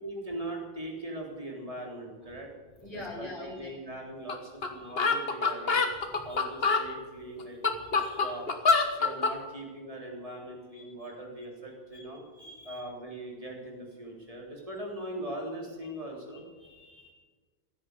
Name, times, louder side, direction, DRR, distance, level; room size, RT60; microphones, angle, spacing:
voice 1, 0.0-2.5 2.9-5.8 6.2-7.6 7.9-8.5 8.9-12.2 12.7-16.4, right 1 dB, 35° right, 0 dB, 3.7 m, -40 dB
voice 2, 2.8-3.7 4.8-4.9 6.2-6.4 7.8-8.3 8.7-8.9 10.7-11.1 11.9-12.0 12.3-12.8 16.3-17.1, left 2 dB, 40° left, -1 dB, 5.3 m, -45 dB
sound 1, 4.3-4.4 4.6-4.7 5.0-6.9 7.4-9.4, left 4 dB, 70° left, 1.6 m, -25 dB
15.5 x 10.0 x 8.2 m, 1.4 s
omnidirectional pair, 1.0 m